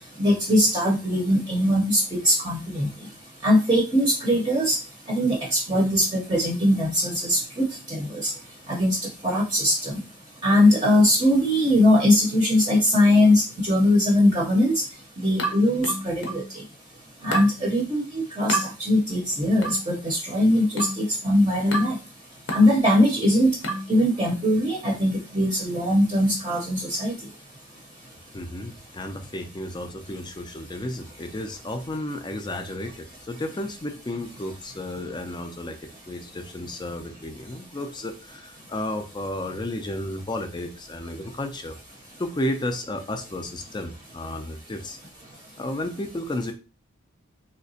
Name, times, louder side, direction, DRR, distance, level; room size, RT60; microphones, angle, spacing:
voice 1, 0.2-2.9 3.4-4.8 5.1-8.3 8.7-9.0 9.2-9.9 10.4-14.7 15.2-16.4 17.2-21.9 22.5-23.5 23.9-27.1, left 1 dB, 20° right, -2 dB, 0.7 m, -21 dB
sound 1, 15.4-16.5 17.3-17.6 18.5-18.7 19.6-19.9 20.8-21.1 21.7-22.0 22.5-22.8 23.6-23.9, right 1 dB, 60° left, 0.7 m, -29 dB
voice 2, 28.3-35.8 36.1-41.7 42.2-45.0 45.6-46.5, left 1 dB, 20° left, 6 dB, 0.4 m, -32 dB
3.3 x 2.8 x 2.7 m, 0.32 s
head